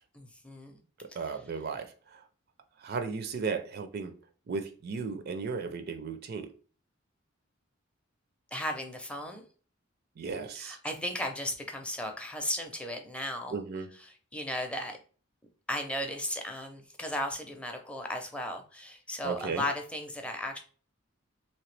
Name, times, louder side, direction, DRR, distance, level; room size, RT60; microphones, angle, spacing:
voice 1, 0.1-0.8 8.5-9.4 10.5-13.6 14.3-15.0 15.7-20.6, left 1 dB, 5° left, 0.5 m, -35 dB
voice 2, 1.1-2.2 2.8-4.1 4.5-6.5 10.2-10.8 13.5-13.9 19.2-19.6, right 5 dB, 50° right, 0.4 m, -35 dB
3.1 x 2.9 x 3.2 m
head